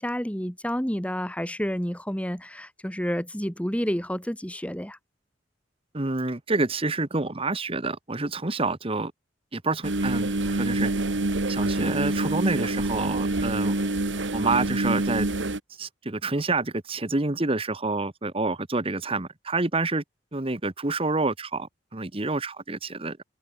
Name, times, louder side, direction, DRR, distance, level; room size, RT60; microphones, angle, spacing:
voice 1, 0.0-5.0, equal, 5° left, 3.3 m, -29 dB
voice 2, 5.9-9.1 9.5-10.9 11.5-13.7 14.3-15.3 15.8-20.0 20.3-23.2, right 3 dB, 30° right, 1.3 m, -28 dB
sound 1, 9.8-15.6, right 2 dB, 70° right, 1.6 m, -26 dB
open air
head